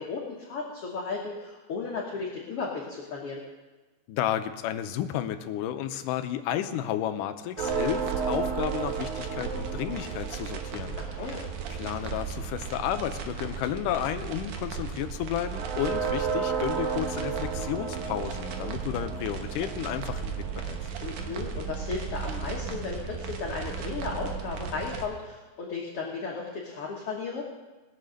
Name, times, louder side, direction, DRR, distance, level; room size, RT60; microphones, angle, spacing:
voice 1, 0.0-3.4 11.0-11.4 21.0-27.4, left 4 dB, 55° left, -2 dB, 1.8 m, -35 dB
voice 2, 4.1-20.8, left 11 dB, 80° left, 9 dB, 2.2 m, -32 dB
sound 1, 7.6-25.1, right 6 dB, 70° right, 2.4 m, -33 dB
19.5 x 6.7 x 6.4 m, 1.2 s
omnidirectional pair, 3.8 m